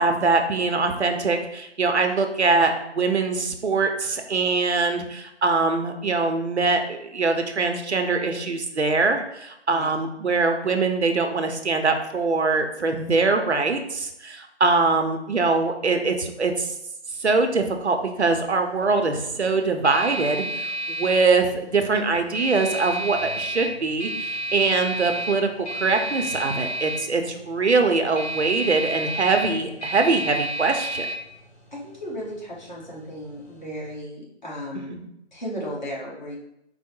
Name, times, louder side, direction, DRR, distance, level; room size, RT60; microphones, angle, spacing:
voice 1, 0.0-16.7 17.2-25.5 25.8-31.1 34.9-35.1, right 3 dB, 70° right, 5 dB, 0.7 m, -23 dB
sound 1, 17.1-33.9, right 1 dB, 65° left, 1.4 m, -33 dB
voice 2, 31.7-34.9 35.3-36.4, equal, 40° left, -5 dB, 1.3 m, -35 dB
4.6 x 2.1 x 4.4 m, 0.81 s
figure-of-eight pair, 170°, 35 cm